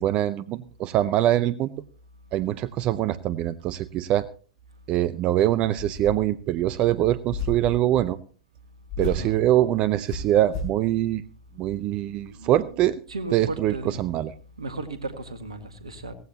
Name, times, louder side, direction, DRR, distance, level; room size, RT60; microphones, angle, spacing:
voice 1, 0.0-1.8 2.3-4.3 4.9-8.2 9.0-11.2 11.6-13.0 13.3-14.3, right 13 dB, 35° right, 0.6 m, -23 dB
sound 1, 5.8-6.4 7.3-7.8 8.9-9.3 10.1-10.8, left 2 dB, 50° left, 5.5 m, -33 dB
voice 2, 9.0-9.4 12.2-14.0 14.6-16.1, right 2 dB, 75° right, 1.8 m, -36 dB
17.0 x 15.5 x 2.9 m
figure-of-eight pair, 100°, 3 cm